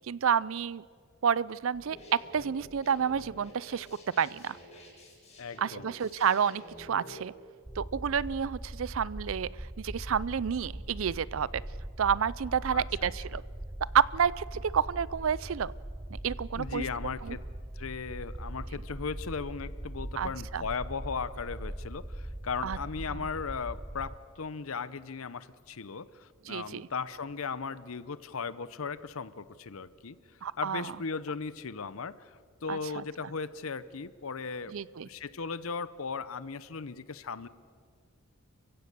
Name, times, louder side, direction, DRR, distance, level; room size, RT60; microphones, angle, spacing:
voice 1, 0.1-0.8 1.2-3.9 4.2-4.6 5.6-7.3 7.8-9.5 9.8-11.6 12.0-13.4 13.9-15.7 16.1-16.8 17.2-17.4 20.2-20.6 22.6-22.8 26.5-26.9 30.4-30.9 32.7-33.0 34.7-35.1, right 7 dB, 65° right, 21 dB, 0.4 m, -29 dB
sound 1, 1.7-7.2, left 1 dB, 30° left, 6.2 m, -50 dB
voice 2, 5.4-5.9 12.7-13.4 16.5-17.4 17.8-30.2 30.6-34.8 35.0-37.5, left 5 dB, 75° left, 16 dB, 0.8 m, -37 dB
sound 2, 7.6-24.2, right 1 dB, 10° right, 0.5 m, -41 dB
30.0 x 16.0 x 6.8 m, 2.1 s
head